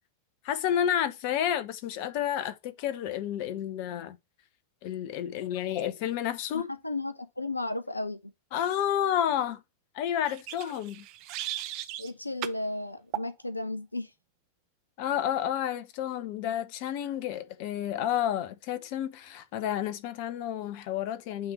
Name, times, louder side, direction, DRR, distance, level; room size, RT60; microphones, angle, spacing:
voice 1, 0.4-4.2 4.8-6.7 8.5-9.6 9.9-11.1 15.0-21.5, left 10 dB, 45° left, 0.9 m, -30 dB
voice 2, 6.5-8.3 12.0-14.1, left 2 dB, 85° left, 0.5 m, -34 dB
sound 1, 10.2-12.1 12.4-12.6 13.1-13.3, right 14 dB, 45° right, 0.7 m, -37 dB
8.7 x 3.5 x 4.3 m
figure-of-eight pair, 90°, 0 cm